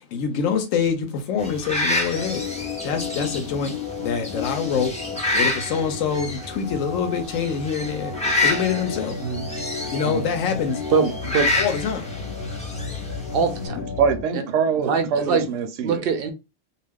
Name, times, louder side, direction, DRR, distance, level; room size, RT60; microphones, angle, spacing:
voice 1, 0.1-2.5 2.8-3.7 4.0-4.9 5.3-8.1 8.4-9.2 9.9-10.8 11.5-12.0, left 6 dB, 85° left, 1.0 m, -25 dB
sound 1, 1.4-13.7, left 2 dB, 10° left, 0.4 m, -29 dB
Organ, 2.1-14.3, left 5 dB, 50° left, 0.6 m, -33 dB
voice 2, 10.9-11.5 13.3-13.8 14.8-15.5 15.8-16.3, right 5 dB, 60° right, 0.6 m, -23 dB
voice 3, 14.0-16.1, right 6 dB, 80° right, 0.9 m, -23 dB
2.4 x 2.3 x 3.4 m
omnidirectional pair, 1.3 m